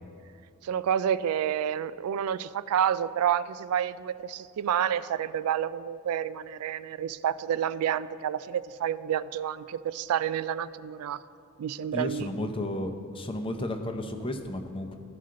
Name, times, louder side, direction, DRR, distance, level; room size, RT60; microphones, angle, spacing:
voice 1, 0.6-11.2 11.6-12.5, right 9 dB, 85° right, 16 dB, 0.3 m, -29 dB
voice 2, 11.9-15.0, left 1 dB, 25° left, 5 dB, 0.6 m, -33 dB
14.5 x 5.6 x 3.7 m, 2.6 s
head